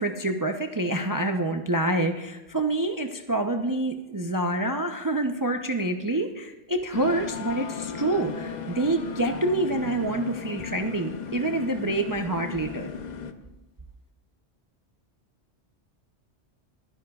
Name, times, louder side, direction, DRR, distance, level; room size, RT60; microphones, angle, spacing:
voice 1, 0.0-12.9, right 2 dB, 25° right, 5 dB, 0.5 m, -27 dB
sound 1, 6.9-13.3, left 6 dB, 45° left, 0.8 m, -36 dB
27.5 x 10.0 x 2.4 m, 1.1 s
omnidirectional pair, 1.2 m